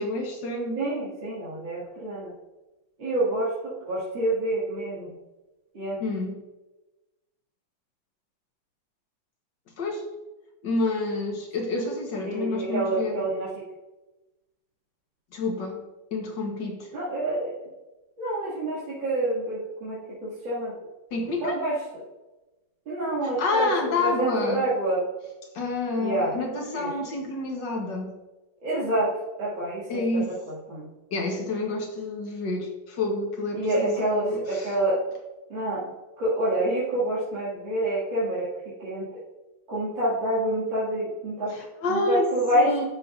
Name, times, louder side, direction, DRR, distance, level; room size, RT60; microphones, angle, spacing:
voice 1, 0.0-0.8 6.0-6.3 9.8-10.1 10.6-13.2 15.3-15.8 16.1-16.9 21.1-21.6 23.2-24.6 25.5-28.1 29.9-30.4 31.1-34.7 41.5-42.8, left 2 dB, 65° left, 2 dB, 2.0 m, -28 dB
voice 2, 0.8-2.3 3.0-5.1 5.7-6.0 12.2-13.5 16.9-17.5 18.2-20.7 21.4-21.8 22.9-23.7 24.0-25.0 26.0-26.3 26.7-26.9 28.6-29.1 29.4-29.9 30.5-30.9 33.5-35.0 35.5-38.5 38.8-39.1 39.7-41.5 41.9-42.9, right 1 dB, 70° right, -10 dB, 3.4 m, -27 dB
12.0 x 7.5 x 2.7 m, 1.1 s
omnidirectional pair, 2.1 m